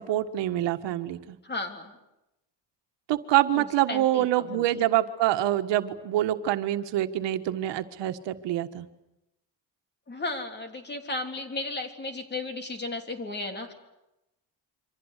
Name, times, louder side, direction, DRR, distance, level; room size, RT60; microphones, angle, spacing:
voice 1, 0.0-1.4 3.1-8.9, right 13 dB, 85° right, 8 dB, 1.6 m, -26 dB
voice 2, 1.4-1.9 3.5-4.6 10.1-13.7, left 2 dB, 25° left, 6 dB, 3.3 m, -35 dB
28.0 x 25.0 x 8.3 m, 0.92 s
cardioid pair, 150°, 42 cm